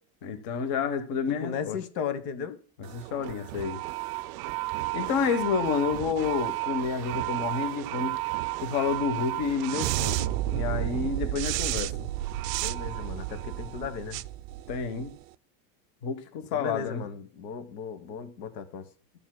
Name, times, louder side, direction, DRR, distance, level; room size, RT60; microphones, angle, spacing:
voice 1, 0.2-1.8 2.9-3.8 4.9-8.1 8.6-11.9 14.7-15.1 16.0-17.0, left 6 dB, 45° left, 1.1 m, -29 dB
voice 2, 1.3-2.6 12.6-14.2 16.5-18.9, left 6 dB, 75° left, 1.3 m, -36 dB
sound 1, 2.8-15.2, right 17 dB, 60° right, 0.5 m, -32 dB
14.0 x 7.1 x 2.2 m
supercardioid pair, 155°, 49 cm